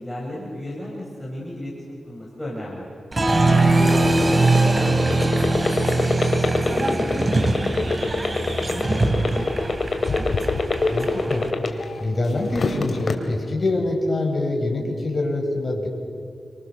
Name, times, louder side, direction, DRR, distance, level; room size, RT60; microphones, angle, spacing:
voice 1, 0.0-2.9 3.4-6.2 6.7-8.2 8.4-10.1, left 1 dB, 10° left, -4 dB, 7.3 m, -34 dB
Applause, 3.1-11.5, right 2 dB, 30° right, 3.2 m, -22 dB
sound 1, 3.8-12.0 12.4-13.1, left 3 dB, 65° left, 3.1 m, -23 dB
voice 2, 10.9-15.9, left 2 dB, 40° left, 0 dB, 5.9 m, -25 dB
29.5 x 25.5 x 7.0 m, 2.5 s
cardioid pair, 65°, 0 cm